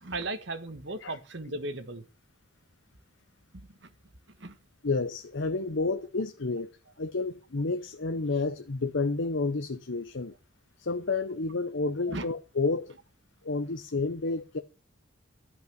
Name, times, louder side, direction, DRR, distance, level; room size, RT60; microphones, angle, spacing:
voice 1, 0.0-2.0 3.5-3.7 4.4-4.6 12.1-12.3, right 2 dB, 60° right, 1.5 m, -36 dB
voice 2, 4.8-10.3 10.8-12.9 13.4-14.6, left 3 dB, 65° left, 0.8 m, -30 dB
13.0 x 5.7 x 7.7 m
head